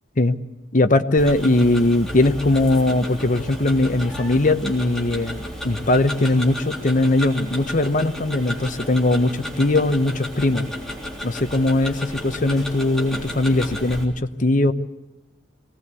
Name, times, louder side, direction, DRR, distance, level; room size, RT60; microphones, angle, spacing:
voice 1, 0.7-10.6 11.2-14.1 14.4-14.7, left 2 dB, 45° left, 9 dB, 1.0 m, -20 dB
Tick-tock, 1.2-14.0, equal, 5° left, 3.4 m, -33 dB
22.0 x 18.5 x 8.3 m, 1.1 s
head